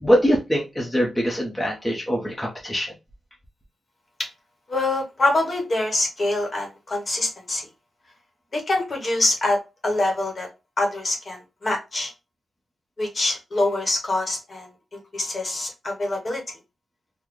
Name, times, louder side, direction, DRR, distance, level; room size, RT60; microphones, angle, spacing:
voice 1, 0.0-2.9, equal, 5° left, -3 dB, 0.8 m, -23 dB
voice 2, 4.7-7.7 8.5-10.5 10.8-12.1 13.0-14.7 15.1-16.4, left 2 dB, 35° left, 2 dB, 1.0 m, -25 dB
4.0 x 2.1 x 3.0 m, 0.26 s
wide cardioid pair, 145°, 0 cm